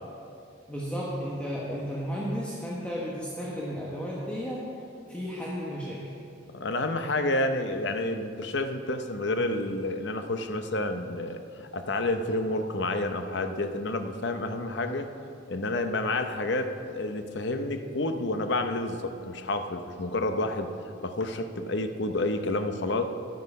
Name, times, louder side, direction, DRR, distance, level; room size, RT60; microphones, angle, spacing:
voice 1, 0.7-4.7 5.1-6.1, equal, 5° left, -6 dB, 1.1 m, -33 dB
voice 2, 6.5-15.1 15.5-20.7 21.0-23.0, left 2 dB, 60° left, 7 dB, 0.7 m, -29 dB
10.5 x 9.4 x 5.5 m, 2.5 s
head